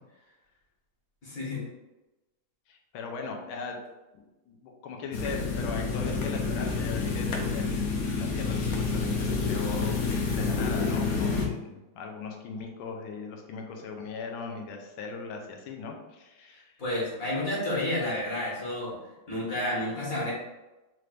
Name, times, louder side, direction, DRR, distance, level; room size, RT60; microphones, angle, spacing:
voice 1, 1.2-1.6 16.8-19.0 19.3-20.3, left 1 dB, 45° left, -6 dB, 1.8 m, -30 dB
voice 2, 2.7-3.8 4.1-10.0 10.2-16.7, left 4 dB, 85° left, 2 dB, 1.5 m, -39 dB
sound 1, 5.1-11.5, left 4 dB, 70° left, 0.8 m, -28 dB
4.6 x 3.2 x 2.5 m, 1.0 s
omnidirectional pair, 2.3 m